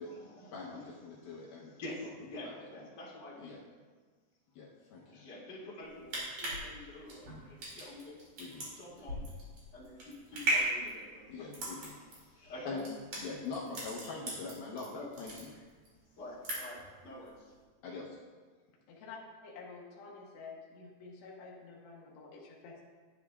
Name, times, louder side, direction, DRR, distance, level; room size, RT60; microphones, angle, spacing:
voice 1, 0.0-3.5 5.0-8.2 8.8-9.2 9.7-12.8 14.8-15.2 16.2-17.5, left 1 dB, 30° left, -8 dB, 2.2 m, -48 dB
voice 2, 0.5-1.7 2.4-2.7 3.4-3.6 4.6-5.3 8.4-8.7 11.3-12.0 12.6-12.8 13.2-15.5 17.8-18.2, left 4 dB, 75° left, -4 dB, 2.4 m, -43 dB
sound 1, 5.8-14.9 15.1-15.9 16.2-16.9 17.2-17.4, right 1 dB, 45° right, 3.3 m, -37 dB
voice 3, 19.4-22.8, left 4 dB, 90° left, -3 dB, 1.5 m, -49 dB
10.5 x 9.9 x 2.4 m, 1.5 s
omnidirectional pair, 4.9 m